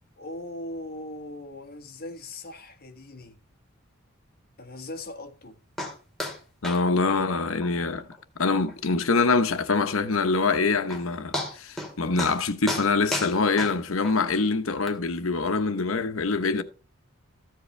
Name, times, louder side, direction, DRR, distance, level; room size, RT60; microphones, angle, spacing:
voice 1, 0.2-3.4 4.6-5.6, left 1 dB, 45° left, 1.4 m, -39 dB
sound 1, 5.8-5.9 6.2-6.4 6.6-6.8 7.1-7.2 7.6-7.7 8.1-8.2 8.7-8.8 10.5-10.6 10.9-11.0 11.3-11.9 12.2-12.4 12.7-14.2 14.9-15.0, left 1 dB, ahead, 2.2 m, -32 dB
voice 2, 6.6-8.1 8.4-16.6, left 4 dB, 75° left, 0.9 m, -24 dB
14.0 x 7.7 x 3.3 m
head